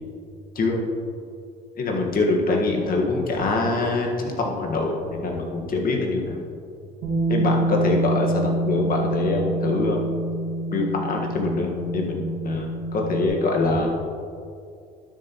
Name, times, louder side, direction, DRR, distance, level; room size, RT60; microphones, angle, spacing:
voice 1, 1.8-6.4 7.3-10.0 10.7-13.9, left 3 dB, 50° left, 0 dB, 1.7 m, -24 dB
Bass guitar, 7.0-13.3, right 2 dB, 90° right, 2.1 m, -26 dB
12.0 x 6.7 x 3.1 m, 2.4 s
supercardioid pair, 80°, 19 cm